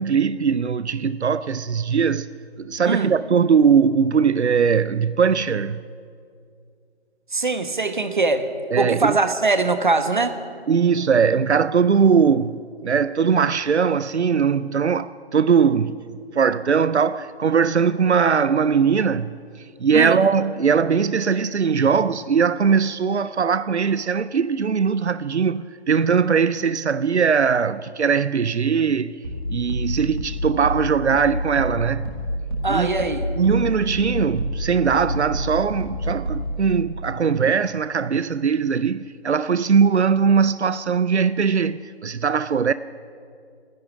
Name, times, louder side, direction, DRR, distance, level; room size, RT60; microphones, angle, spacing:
voice 1, 0.0-2.3 2.6-5.8 8.7-9.2 10.7-16.0 16.3-29.1 29.5-32.1 32.7-32.9 33.4-42.7, right 6 dB, 90° right, 0.5 m, -20 dB
voice 2, 7.3-8.5 8.8-10.4 19.9-20.2 32.6-33.3, right 3 dB, 45° right, 1.1 m, -21 dB
sound 1, 29.2-36.7, equal, 20° right, 1.8 m, -28 dB
12.5 x 10.5 x 9.8 m
figure-of-eight pair, 165°, 33 cm